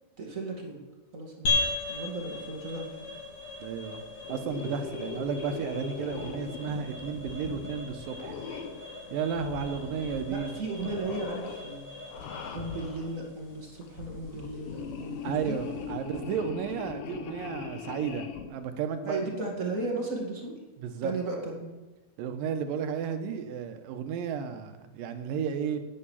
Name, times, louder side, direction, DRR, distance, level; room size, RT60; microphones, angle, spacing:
voice 1, 0.2-0.8 1.1-1.6 1.9-3.0 10.3-11.8 12.5-15.9 19.0-20.5 21.0-21.8, right 2 dB, 30° right, -1 dB, 1.9 m, -35 dB
sound 1, 1.4-16.1, left 3 dB, 45° left, 3.0 m, -38 dB
voice 2, 3.6-4.0 4.3-8.4 9.1-10.6 15.2-19.2 20.8-21.1 22.2-25.8, right 7 dB, 90° right, 8 dB, 2.7 m, -33 dB
sound 2, 4.2-8.9 9.3-10.5 10.8-11.6 12.1-13.1 13.8-18.5, left 6 dB, 75° left, 2.5 m, -40 dB
10.0 x 9.3 x 7.2 m, 1.2 s
omnidirectional pair, 3.9 m